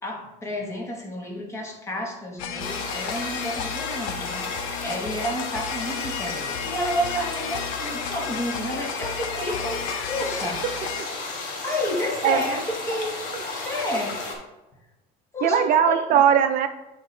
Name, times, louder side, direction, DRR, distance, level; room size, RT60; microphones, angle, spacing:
voice 1, 0.0-10.6 11.6-13.2 13.6-14.2 15.3-16.0, equal, 15° left, 0 dB, 1.1 m, -30 dB
sound 1, 2.4-11.0, left 7 dB, 85° left, 0.7 m, -33 dB
sound 2, 2.6-14.4, left 3 dB, 50° left, 1.4 m, -33 dB
voice 2, 15.4-16.7, right 8 dB, 50° right, 9 dB, 0.6 m, -19 dB
9.1 x 4.1 x 3.2 m, 1.0 s
cardioid pair, 145°, 17 cm